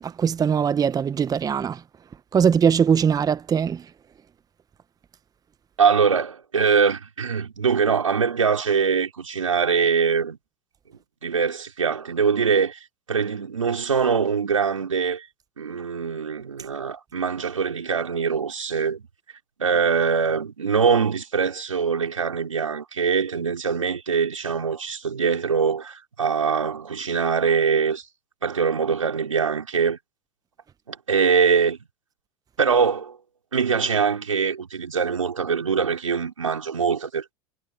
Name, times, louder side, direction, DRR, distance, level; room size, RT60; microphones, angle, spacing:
voice 1, 0.0-1.8 2.3-3.8, right 7 dB, 25° right, 1.0 m, -21 dB
voice 2, 5.8-10.4 11.2-12.8 13.1-15.3 15.6-19.1 19.6-28.0 28.4-30.0 30.9-31.8 32.6-33.2 33.5-37.3, right 6 dB, 90° right, 4.3 m, -23 dB
hypercardioid pair, 90°, 16 cm